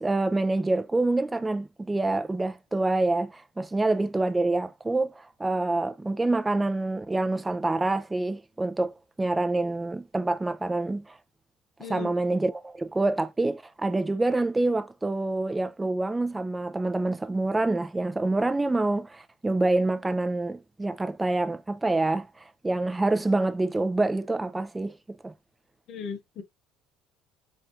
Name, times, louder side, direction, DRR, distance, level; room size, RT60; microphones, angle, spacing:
voice 1, 0.0-11.1 11.9-22.3 22.6-25.3, right 2 dB, 15° right, 0.4 m, -26 dB
voice 2, 11.8-12.1 25.9-26.4, left 6 dB, 60° left, 0.6 m, -37 dB
3.3 x 2.4 x 2.7 m
supercardioid pair, 80°, 0 cm